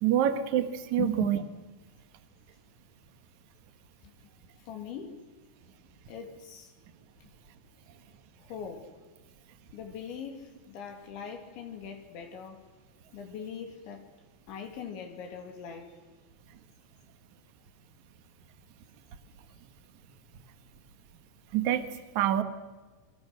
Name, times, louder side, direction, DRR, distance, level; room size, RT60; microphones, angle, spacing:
voice 1, 0.0-1.4 21.5-21.8 22.1-22.4, right 11 dB, 60° right, 2.0 m, -26 dB
voice 2, 1.0-1.3 4.0-4.1 4.6-5.2 6.1-6.7 7.2-7.3 8.4-8.9 9.7-12.7 13.1-14.1 14.5-16.0, left 8 dB, 70° left, 4.7 m, -41 dB
28.0 x 24.0 x 6.5 m
omnidirectional pair, 5.5 m